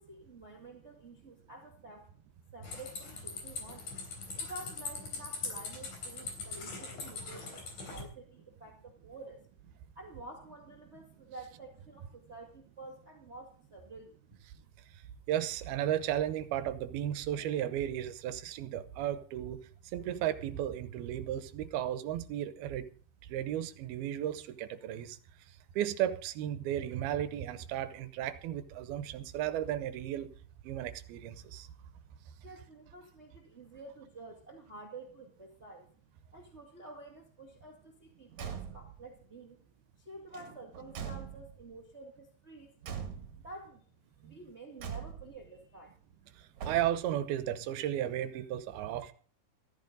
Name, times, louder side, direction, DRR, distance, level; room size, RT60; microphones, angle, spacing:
voice 1, 0.0-2.1 2.5-3.9 4.4-9.5 9.9-14.1 32.4-35.9 36.3-39.6 40.0-42.7 43.4-43.8 44.2-45.9, right 2 dB, 25° right, 1.8 m, -50 dB
sound 1, 2.6-8.0, left 4 dB, 55° left, 5.0 m, -41 dB
voice 2, 15.3-19.6 19.9-22.9 23.3-25.2 25.8-30.3 30.6-31.7 46.7-49.1, right 11 dB, 80° right, 2.8 m, -34 dB
Car / Truck / Slam, 38.3-39.1 40.3-41.7 42.8-43.6 44.8-45.5 46.6-47.2, right 7 dB, 55° right, 3.0 m, -42 dB
14.5 x 14.0 x 3.9 m
omnidirectional pair, 4.5 m